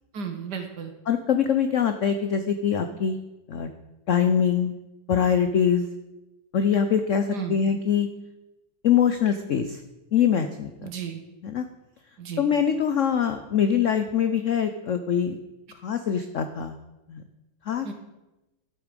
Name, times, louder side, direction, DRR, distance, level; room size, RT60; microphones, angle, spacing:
voice 1, 0.1-0.9 7.3-7.6 10.8-11.2 12.2-12.5 17.8-17.9, right 6 dB, 60° right, 6 dB, 1.8 m, -33 dB
voice 2, 1.1-3.2 3.5-3.7 4.1-4.8 5.1-5.8 6.5-8.1 8.8-9.8 10.1-10.7 11.4-11.7 12.4-15.4 15.8-16.7 17.1-17.2 17.7-17.9, left 8 dB, 70° left, 8 dB, 0.7 m, -23 dB
12.0 x 8.2 x 5.2 m, 1.0 s
omnidirectional pair, 2.1 m